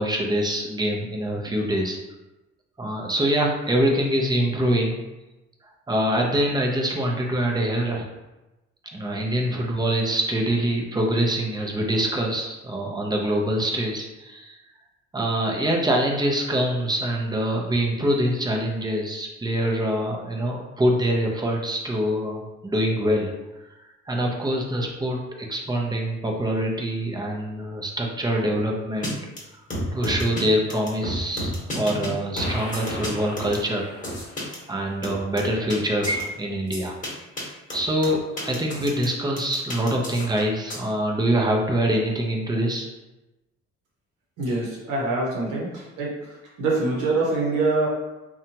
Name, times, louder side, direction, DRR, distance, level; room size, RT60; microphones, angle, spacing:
voice 1, 0.0-2.0 2.8-5.0 5.9-8.1 8.9-14.6 15.1-23.3 24.1-29.2 29.9-33.9 34.7-36.9 37.7-42.9, right 1 dB, 15° right, 0 dB, 0.5 m, -24 dB
sound 1, 29.0-29.1 29.4-29.5 29.7-30.4 30.7-32.1 32.4-34.6 35.0-35.8 36.0-36.2 36.7-37.1 37.4-37.5 37.7-39.1 39.4-40.8, left 1 dB, 25° left, 1.0 m, -31 dB
voice 2, 44.4-46.1 46.6-47.9, right 3 dB, 85° right, -4 dB, 0.8 m, -24 dB
2.7 x 2.2 x 2.7 m, 1.0 s
cardioid pair, 90°, 30 cm